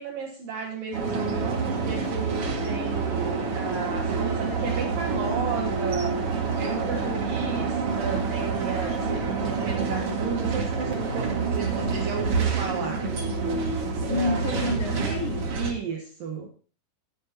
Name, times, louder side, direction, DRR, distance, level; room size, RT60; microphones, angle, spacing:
voice 1, 0.0-13.1 14.0-14.4 15.5-16.5, right 5 dB, 65° right, 2.8 m, -34 dB
sound 1, 0.9-15.7, right 4 dB, 40° right, 2.4 m, -27 dB
voice 2, 6.9-7.7 14.1-15.6, left 4 dB, 85° left, 1.1 m, -31 dB
19.5 x 8.7 x 2.9 m
omnidirectional pair, 4.8 m